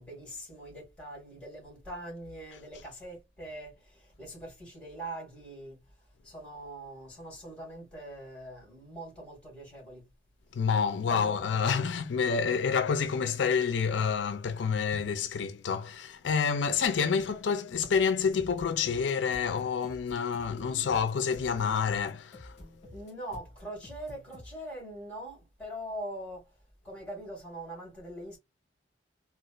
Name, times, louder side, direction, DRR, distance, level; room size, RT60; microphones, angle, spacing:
voice 1, 0.0-5.8 6.2-10.1 10.7-11.4 22.9-26.5 26.8-28.4, right 1 dB, 5° left, 2.2 m, -42 dB
voice 2, 10.5-22.5, left 6 dB, 70° left, 0.4 m, -28 dB
sound 1, 17.7-24.5, left 1 dB, 35° left, 1.4 m, -50 dB
3.9 x 2.3 x 2.3 m
head